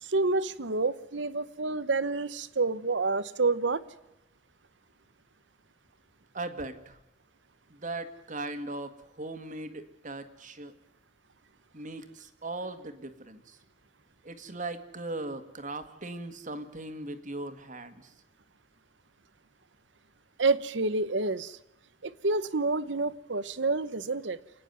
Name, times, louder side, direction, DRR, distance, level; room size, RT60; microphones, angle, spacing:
voice 1, 0.0-3.8 20.4-21.6 22.0-24.4, right 3 dB, 70° right, 16 dB, 1.0 m, -28 dB
voice 2, 6.3-7.0 7.7-10.7 11.7-13.6 14.2-18.1, right 2 dB, 40° right, 9 dB, 1.9 m, -39 dB
29.5 x 9.9 x 9.4 m, 0.90 s
head